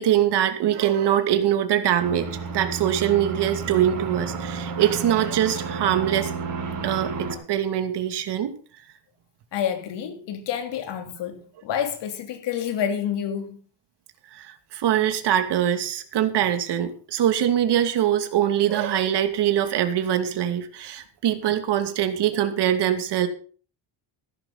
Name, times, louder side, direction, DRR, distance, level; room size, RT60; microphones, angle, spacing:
voice 1, 0.0-6.3 6.8-8.6 14.3-23.3, right 10 dB, 60° right, 2.6 m, -23 dB
sound 1, 2.0-7.3, right 5 dB, 45° right, 7.7 m, -31 dB
voice 2, 9.5-13.6, left 9 dB, 65° left, 3.7 m, -28 dB
16.0 x 14.0 x 4.1 m
cardioid pair, 145°, 45 cm